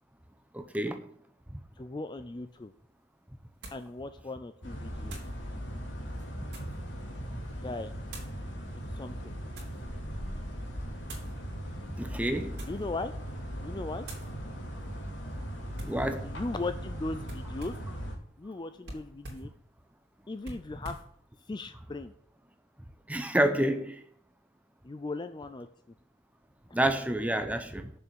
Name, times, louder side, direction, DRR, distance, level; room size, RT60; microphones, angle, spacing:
voice 1, 0.5-1.1 1.5-1.6 7.3-7.4 12.0-12.6 15.8-16.3 20.7-20.8 23.1-24.0 26.7-27.9, right 1 dB, 10° right, 0.8 m, -29 dB
voice 2, 1.8-2.7 3.7-5.2 7.6-7.9 8.9-9.3 12.6-13.1 13.6-14.1 16.2-17.7 18.4-19.5 20.3-21.0 21.5-22.1 24.8-25.7 26.7-26.8, left 2 dB, 25° left, 0.4 m, -38 dB
sound 1, 2.5-2.6 3.6-3.9 5.0-5.4 6.1-6.8 8.1-8.4 9.1-9.8 11.0-11.3 12.4-12.9 13.3-13.6 14.0-14.3 15.7-16.0 17.2-17.9 18.8-19.5 20.4-21.1, right 1 dB, 60° right, 3.0 m, -45 dB
sound 2, 4.6-18.1, equal, 75° left, 2.7 m, -39 dB
6.9 x 6.8 x 8.0 m
head